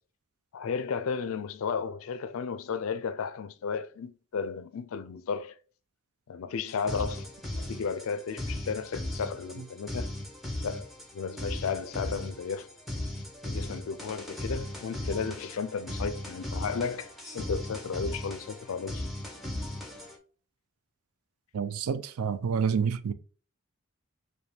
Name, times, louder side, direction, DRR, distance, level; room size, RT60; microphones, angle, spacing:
voice 1, 0.5-5.6 6.3-7.3 7.6-10.1 10.6-12.7 13.5-19.1, left 5 dB, 65° left, 0.4 m, -34 dB
sound 1, 6.7-20.2, left 1 dB, ahead, 0.7 m, -37 dB
voice 2, 21.5-23.1, right 6 dB, 80° right, 0.4 m, -28 dB
5.0 x 2.2 x 3.3 m
head